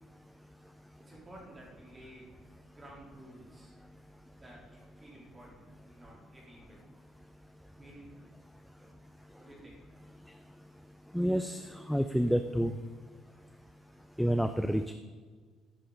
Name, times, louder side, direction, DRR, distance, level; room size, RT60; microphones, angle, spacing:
voice 1, 1.0-2.3 2.7-3.7 4.4-6.8 7.7-8.3 8.8-8.9 9.4-9.8, right 1 dB, 15° right, -4 dB, 3.7 m, -53 dB
voice 2, 11.1-12.7 14.2-14.9, equal, ahead, 8 dB, 0.4 m, -29 dB
13.5 x 10.0 x 4.0 m, 1.5 s
cardioid pair, 160°, 0 cm